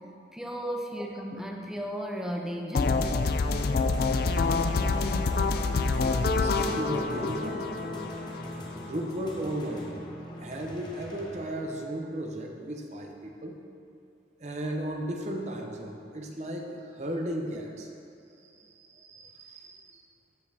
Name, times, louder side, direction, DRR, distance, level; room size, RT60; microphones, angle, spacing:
voice 1, 0.3-3.1, equal, 5° right, 1 dB, 0.5 m, -35 dB
sound 1, 2.7-8.7, left 3 dB, 55° left, 0.3 m, -27 dB
sound 2, 3.6-11.9, left 1 dB, 25° left, 0.8 m, -41 dB
voice 2, 6.1-7.7 8.7-10.0 10.4-13.6 14.4-17.9 18.4-20.0, right 1 dB, 40° right, 2 dB, 0.7 m, -35 dB
12.5 x 5.2 x 2.8 m, 2.6 s
head